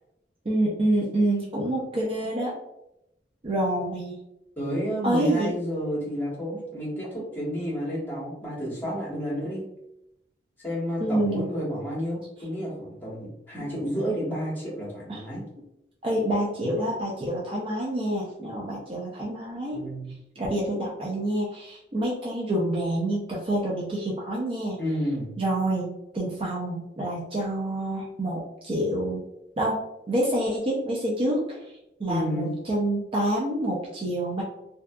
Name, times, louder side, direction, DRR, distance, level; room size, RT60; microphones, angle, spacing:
voice 1, 0.5-2.5 3.4-4.2 5.0-5.5 11.0-11.5 13.5-13.6 15.1-15.2 16.0-19.8 20.4-24.8 25.4-29.2 29.6-29.8 30.1-31.6 32.0-34.4, right 1 dB, 30° right, -4 dB, 0.4 m, -27 dB
voice 2, 4.6-9.6 10.6-15.4 19.7-20.1 24.8-25.3 32.1-32.5, equal, 10° left, -8 dB, 1.1 m, -30 dB
2.6 x 2.4 x 2.2 m, 0.85 s
head